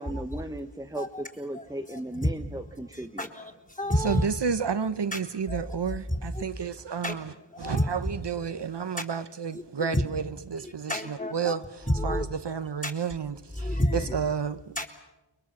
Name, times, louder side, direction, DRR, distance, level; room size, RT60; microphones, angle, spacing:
voice 1, 0.0-3.3, right 1 dB, 10° right, 0.9 m, -36 dB
voice 2, 1.5-2.3 2.9-4.3 5.1-5.2 5.5-5.6 6.1-6.4 7.0-7.2 7.5-7.9 9.0-9.1 9.5-10.0 10.6-11.5 11.9-12.3 12.8-12.9 13.6-14.2 14.8-14.9, left 1 dB, 15° left, 3.6 m, -29 dB
voice 3, 4.0-7.3 7.6-14.7, right 6 dB, 65° right, 0.9 m, -31 dB
30.0 x 22.5 x 7.3 m
wide cardioid pair, 65°, 44 cm